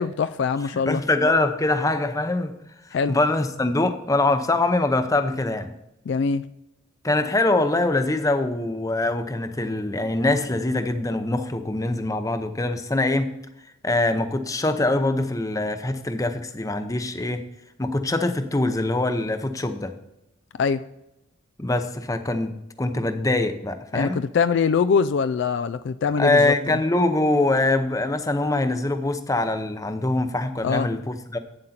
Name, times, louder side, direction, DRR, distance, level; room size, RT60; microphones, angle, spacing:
voice 1, 0.0-1.0 2.9-3.2 6.1-6.4 20.6-20.8 23.9-26.8 30.6-30.9, left 5 dB, 60° left, 11 dB, 0.3 m, -23 dB
voice 2, 0.7-2.6 3.1-5.7 7.0-13.3 13.8-17.4 17.8-19.9 21.6-24.2 26.2-31.4, left 2 dB, 15° left, 8 dB, 0.6 m, -23 dB
9.0 x 7.8 x 4.3 m, 0.88 s
head